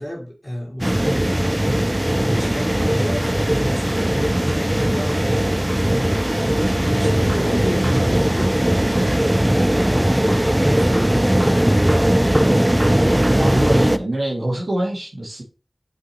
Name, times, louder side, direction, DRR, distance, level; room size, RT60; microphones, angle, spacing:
voice 1, 0.0-1.5 2.1-6.2 6.9-12.0, equal, 10° left, 3.8 m, -31 dB
sound 1, 0.8-14.0, right 1 dB, 15° right, 0.5 m, -18 dB
voice 2, 13.3-15.4, right 1 dB, 75° right, 2.3 m, -24 dB
7.8 x 5.4 x 3.1 m
wide cardioid pair, 50°, 0 cm